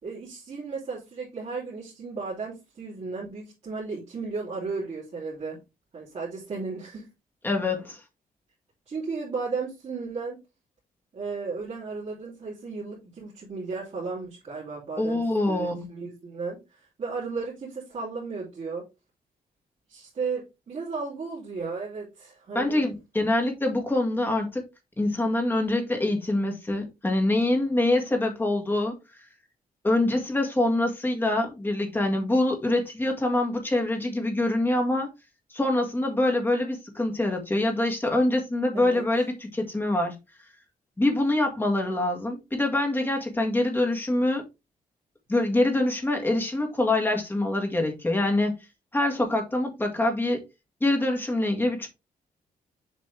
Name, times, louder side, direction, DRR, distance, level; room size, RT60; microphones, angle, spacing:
voice 1, 0.0-5.6 5.9-7.1 8.9-10.4 11.1-18.9 19.9-22.9 38.7-39.0, right 4 dB, 45° right, 3.2 m, -34 dB
voice 2, 7.4-8.0 15.0-15.9 22.6-24.7 25.0-28.9 29.8-35.1 35.5-40.2 41.0-44.4 45.3-48.6 48.9-50.4 50.8-51.9, left 1 dB, 15° left, 1.8 m, -25 dB
7.2 x 4.2 x 3.4 m
wide cardioid pair, 155°, 15 cm